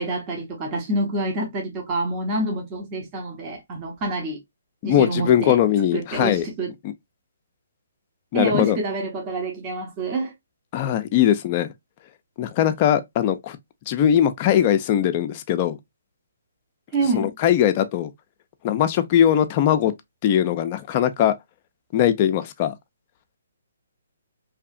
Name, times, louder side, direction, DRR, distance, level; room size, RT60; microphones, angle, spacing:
voice 1, 0.0-4.4 4.8-5.6 5.9-6.7 8.3-10.3 16.9-17.3, right 2 dB, 25° right, 0.8 m, -27 dB
voice 2, 4.8-6.4 6.8-6.9 8.3-8.8 10.7-11.7 12.4-13.6 13.9-15.8 17.1-18.1 18.6-19.9 20.2-21.3 21.9-22.7, left 10 dB, 35° left, 0.4 m, -20 dB
2.8 x 2.4 x 2.4 m
hypercardioid pair, 150°, 0 cm